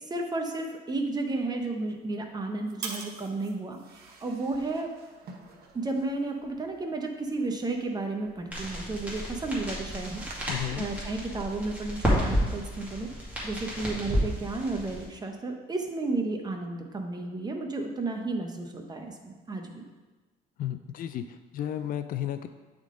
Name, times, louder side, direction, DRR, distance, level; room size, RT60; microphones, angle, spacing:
voice 1, 0.1-3.8 4.0-4.9 5.7-10.2 10.8-13.1 13.4-19.9, right 2 dB, 25° right, 3 dB, 0.9 m, -32 dB
sound 1, 1.6-10.7, right 5 dB, 70° right, 0.9 m, -47 dB
sound 2, 8.5-15.0, equal, 10° right, 2.0 m, -31 dB
voice 2, 10.5-10.9 20.6-22.5, left 11 dB, 55° left, 10 dB, 0.4 m, -33 dB
8.8 x 3.7 x 3.7 m, 1.2 s
cardioid pair, 110°, 17 cm